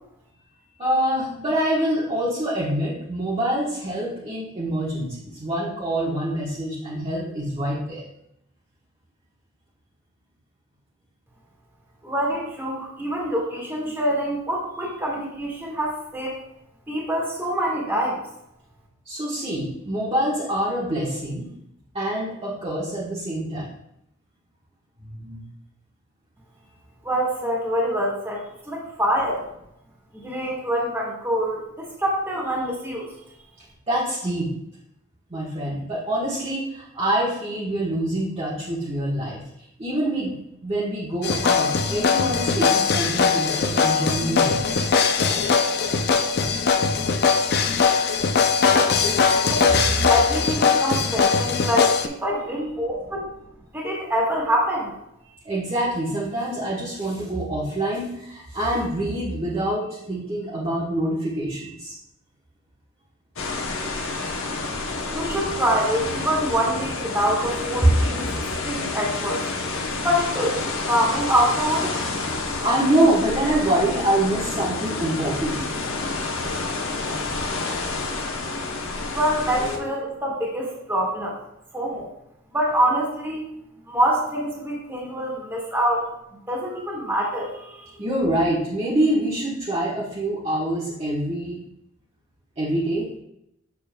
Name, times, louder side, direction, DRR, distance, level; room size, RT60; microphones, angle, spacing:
voice 1, 0.8-8.0 19.0-21.5 21.9-23.7 25.0-25.4 33.9-34.6 35.3-39.4 39.8-40.3 40.6-44.7 55.4-61.9 63.7-64.3 72.6-75.7 88.0-91.6 92.6-93.1, right 1 dB, 30° right, -8 dB, 1.2 m, -25 dB
voice 2, 12.0-16.4 16.9-18.2 27.0-28.4 28.7-29.4 30.1-33.1 49.5-49.6 50.1-53.2 53.7-54.9 65.1-68.3 68.6-69.4 69.9-70.6 70.9-71.9 79.1-81.4 81.7-82.1 82.5-83.4 83.9-86.0 86.5-88.0, equal, 10° right, -3 dB, 1.7 m, -25 dB
sound 1, 41.2-52.1, left 5 dB, 50° left, 0.5 m, -20 dB
sound 2, 63.4-79.8, left 3 dB, 70° left, 0.9 m, -29 dB
7.1 x 6.8 x 2.2 m, 0.79 s
head